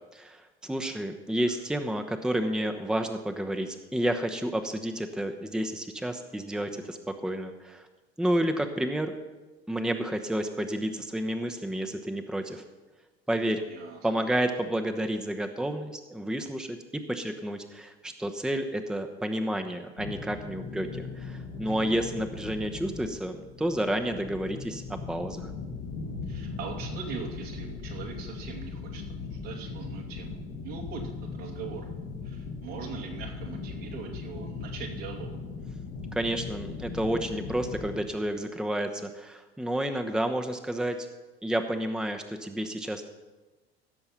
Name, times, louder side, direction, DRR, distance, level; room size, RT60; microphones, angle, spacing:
voice 1, 0.1-7.8 8.2-9.1 9.7-12.6 13.3-13.6 14.0-16.8 17.1-24.8 25.1-25.5 36.1-41.0 41.4-43.0, right 1 dB, ahead, 6 dB, 1.0 m, -30 dB
voice 2, 13.7-14.3 21.6-22.0 26.3-31.9 32.2-35.3, right 6 dB, 70° right, 0 dB, 2.6 m, -41 dB
sound 1, 20.0-38.1, left 4 dB, 75° left, 2.0 m, -39 dB
16.0 x 6.9 x 5.8 m, 1.2 s
figure-of-eight pair, 65°, 30 cm